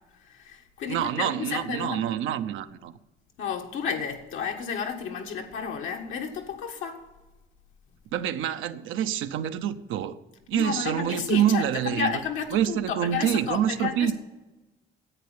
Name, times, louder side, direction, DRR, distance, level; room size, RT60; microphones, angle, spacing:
voice 1, 0.3-2.0 3.4-7.0 10.5-14.1, left 6 dB, 85° left, 1.6 m, -32 dB
voice 2, 0.9-2.9 8.1-10.2 10.5-12.2 12.5-14.1, right 10 dB, 90° right, 0.7 m, -26 dB
9.9 x 8.5 x 8.7 m
cardioid pair, 90°, 20 cm